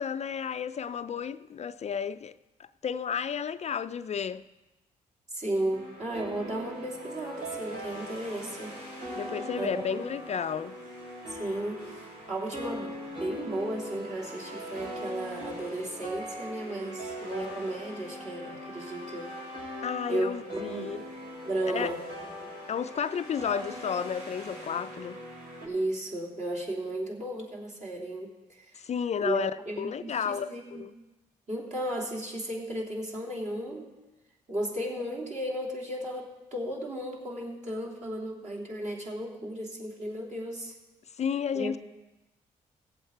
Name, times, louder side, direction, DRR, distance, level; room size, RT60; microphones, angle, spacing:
voice 1, 0.0-2.3 2.6-4.4 9.2-10.8 19.8-21.0 21.7-21.9 22.7-25.2 28.8-29.5 29.8-30.9 41.2-41.8, left 7 dB, 45° left, 0.4 m, -32 dB
voice 2, 5.3-8.8 9.6-10.0 11.3-19.4 19.7-20.9 21.4-22.5 25.6-28.7 29.2-30.9 31.5-33.9 34.5-40.7 41.5-41.8, right 1 dB, 50° right, 3.2 m, -35 dB
sound 1, 5.7-25.7, equal, 75° right, 4.9 m, -40 dB
16.5 x 7.8 x 4.5 m
supercardioid pair, 50°, 16 cm